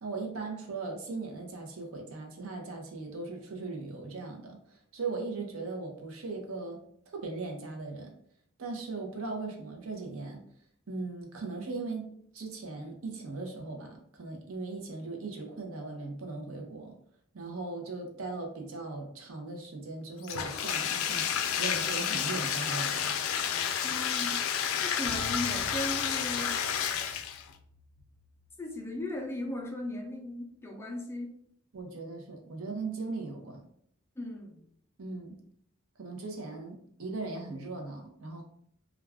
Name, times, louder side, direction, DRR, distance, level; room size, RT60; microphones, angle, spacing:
voice 1, 0.0-6.8 7.1-8.2 8.6-10.4 10.9-17.0 17.3-21.3 21.6-23.2 31.7-33.6 35.0-35.4 36.0-38.4, right 3 dB, 90° right, 2 dB, 0.7 m, -38 dB
Bathtub (filling or washing), 20.2-27.5, left 8 dB, 85° left, 0.3 m, -30 dB
voice 2, 23.8-24.3 24.8-26.7 28.6-31.3 34.2-34.6, left 1 dB, 10° left, 1 dB, 0.4 m, -37 dB
sound 1, 25.1-29.5, left 1 dB, 30° right, 0.8 m, -49 dB
2.3 x 2.3 x 3.4 m, 0.67 s
head